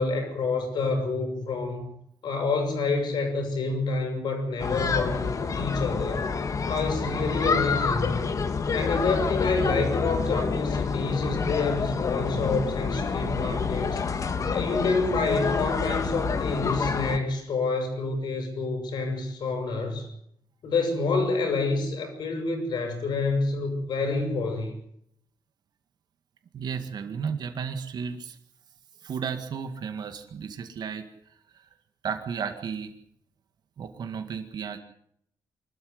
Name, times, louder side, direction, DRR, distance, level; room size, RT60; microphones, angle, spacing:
voice 1, 0.0-1.9 2.2-6.3 6.7-8.2 8.7-14.0 14.5-20.1 20.6-24.7, left 3 dB, 75° left, 6 dB, 6.7 m, -28 dB
sound 1, 4.6-17.2, left 5 dB, 45° left, 1.9 m, -28 dB
voice 2, 26.5-28.4 29.0-31.1 32.0-32.9 33.8-34.8, right 6 dB, 65° right, 7 dB, 2.0 m, -33 dB
24.5 x 13.0 x 9.6 m, 0.72 s
cardioid pair, 115°, 8 cm